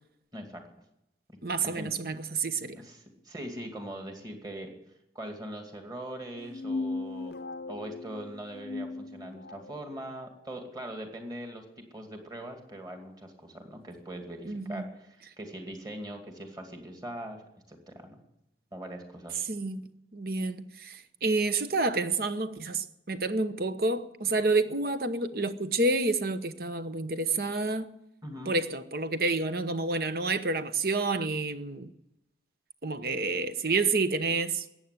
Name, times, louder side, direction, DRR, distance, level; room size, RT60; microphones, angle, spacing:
voice 1, 0.3-0.7 1.3-1.4 1.6-2.0 2.7-4.7 5.1-7.4 7.7-17.4 17.7-18.2 18.7-19.3 28.2-28.5, right 1 dB, 20° right, 2.3 m, -41 dB
voice 2, 1.4-2.8 14.4-14.9 19.5-19.9 20.1-27.9 28.5-31.9 32.8-34.7, right 3 dB, 55° right, 1.0 m, -29 dB
sound 1, 6.4-9.8, left 3 dB, 60° left, 0.6 m, -37 dB
14.5 x 9.1 x 9.8 m
head